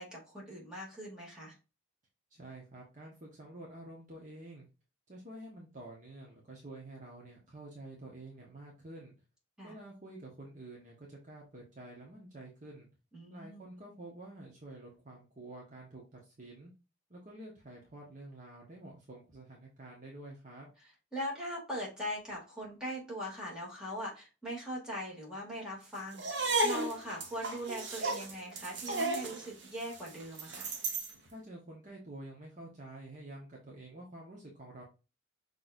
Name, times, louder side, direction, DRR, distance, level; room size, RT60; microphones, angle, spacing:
voice 1, 0.0-1.6 9.6-9.7 13.1-13.7 21.1-30.7, equal, 5° right, -4 dB, 2.4 m, -41 dB
voice 2, 2.3-4.7 5.1-9.1 9.6-12.9 13.3-16.7 17.1-20.7 31.2-34.8, right 1 dB, 40° right, -2 dB, 1.2 m, -49 dB
sound 1, 26.1-31.1, right 2 dB, 60° right, 1.1 m, -34 dB
6.1 x 3.3 x 2.6 m, 0.30 s
head